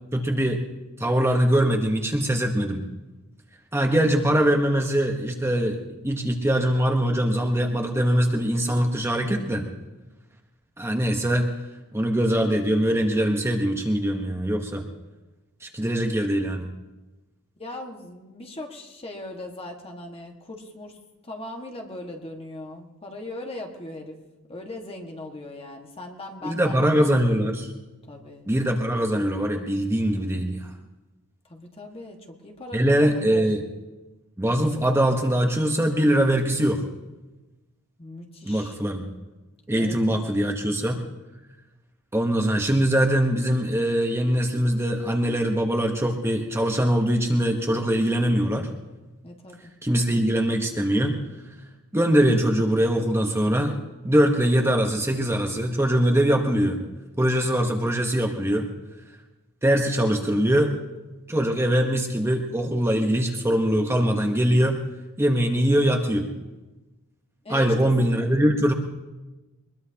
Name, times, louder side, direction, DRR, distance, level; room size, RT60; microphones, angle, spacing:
voice 1, 0.1-0.6 1.0-2.8 3.7-9.7 10.8-11.5 11.9-14.8 15.6-16.7 26.4-27.7 28.5-30.7 32.7-33.6 34.4-36.8 38.4-39.0 39.7-41.0 42.1-48.7 49.8-51.2 51.9-53.8 54.0-56.8 57.2-58.7 59.6-60.7 61.3-64.8 65.2-66.3 67.5-68.7, equal, 10° right, 2 dB, 1.0 m, -22 dB
voice 2, 17.6-21.0 21.2-24.2 24.5-27.1 28.1-28.4 31.5-33.5 38.0-38.8 39.8-40.5 49.2-49.7 67.4-67.9, left 2 dB, 25° left, 2 dB, 1.7 m, -39 dB
23.0 x 21.0 x 2.9 m, 1.1 s
head